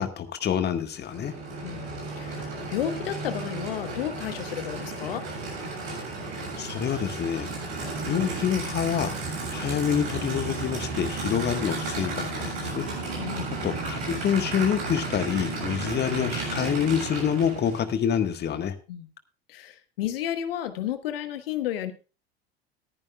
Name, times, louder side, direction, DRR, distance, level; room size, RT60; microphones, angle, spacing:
voice 1, 0.0-1.3 6.6-7.5 8.0-9.2 9.5-12.9 13.6-18.7, left 8 dB, 35° left, 10 dB, 1.5 m, -27 dB
Aircraft / Idling, 0.9-17.9, right 3 dB, 55° right, 7.1 m, -33 dB
voice 2, 1.6-5.2 13.1-13.5 18.9-19.1 19.5-21.9, left 11 dB, 65° left, 10 dB, 1.4 m, -32 dB
19.5 x 10.5 x 2.3 m, 0.31 s
figure-of-eight pair, 65°, 31 cm